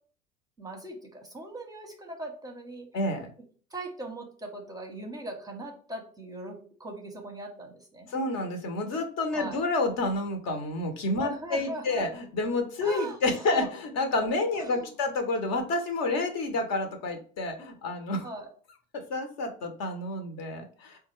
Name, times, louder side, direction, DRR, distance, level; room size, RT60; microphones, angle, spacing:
voice 1, 0.6-2.9 3.7-8.1 9.3-9.6 11.2-12.1 12.8-13.2 13.5-13.7 14.5-14.9 18.2-18.5, right 1 dB, 10° right, 2 dB, 0.7 m, -39 dB
voice 2, 2.9-3.3 8.1-18.3 18.9-21.0, left 2 dB, 50° left, 5 dB, 0.9 m, -29 dB
4.0 x 2.3 x 3.1 m, 0.43 s
hypercardioid pair, 75°, 34 cm